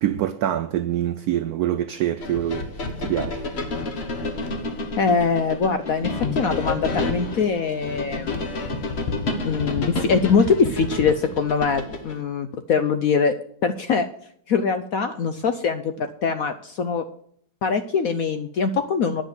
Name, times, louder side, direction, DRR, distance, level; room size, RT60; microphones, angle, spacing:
voice 1, 0.0-2.7 3.0-3.4, right 11 dB, 80° right, 0.8 m, -25 dB
sound 1, 2.2-12.2, left 2 dB, 35° left, 1.3 m, -29 dB
voice 2, 5.0-8.5 9.4-13.4 13.6-14.1 14.5-17.0 17.6-19.2, left 5 dB, 65° left, 0.8 m, -23 dB
10.0 x 6.3 x 8.0 m
omnidirectional pair, 2.1 m